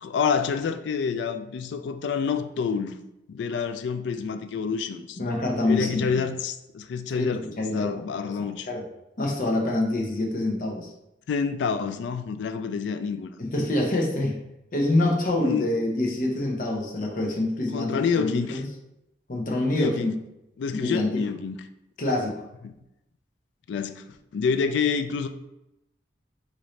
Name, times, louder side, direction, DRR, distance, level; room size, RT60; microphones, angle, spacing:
voice 1, 0.0-3.0 3.3-5.2 5.6-8.7 11.3-13.3 15.4-15.7 17.7-18.6 19.7-20.1 20.6-21.6 22.6-22.7 23.7-24.0 24.3-25.3, left 6 dB, 70° left, 0.3 m, -28 dB
voice 2, 5.2-6.2 7.1-8.0 8.2-8.3 8.7-8.9 9.2-10.9 13.4-14.4 14.7-18.6 19.3-20.1 20.7-21.2 22.0-22.3, left 2 dB, 45° left, 0.7 m, -26 dB
3.9 x 2.6 x 3.1 m
head